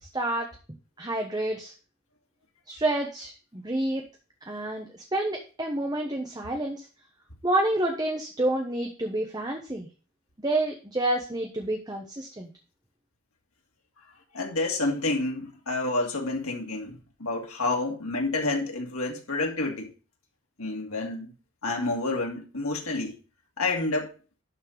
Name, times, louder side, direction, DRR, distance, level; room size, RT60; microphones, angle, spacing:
voice 1, 0.0-0.5 1.0-1.7 2.7-4.0 4.4-6.9 7.4-9.9 10.4-12.5, right 1 dB, 20° right, 1.1 m, -29 dB
voice 2, 14.3-19.9 20.6-21.3 21.6-23.1 23.6-24.1, left 2 dB, 90° left, 2.7 m, -29 dB
11.5 x 4.4 x 5.1 m
head